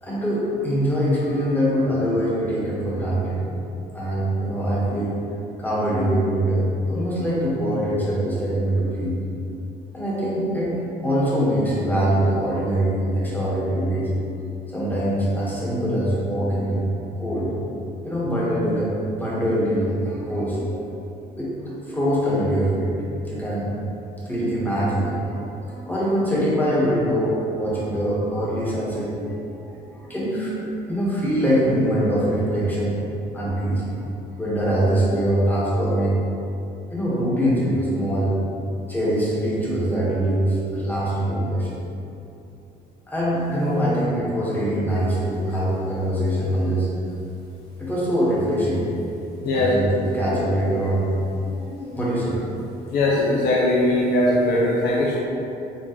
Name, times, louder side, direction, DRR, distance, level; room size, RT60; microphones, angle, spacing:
voice 1, 0.0-3.4 3.9-5.2 5.6-9.2 9.9-10.7 11.0-14.1 14.7-16.8 17.2-17.5 18.0-20.9 21.4-21.5 21.8-22.9 23.2-23.7 24.2-30.5 30.9-33.0 33.3-34.0 34.4-36.2 36.9-38.3 38.9-41.8 43.1-46.9 47.8-48.8 49.5-52.4, equal, 10° left, -7 dB, 1.3 m, -23 dB
voice 2, 52.9-55.2, left 1 dB, 70° left, -4 dB, 0.6 m, -20 dB
4.5 x 3.7 x 3.0 m, 2.7 s
cardioid pair, 110°, 17 cm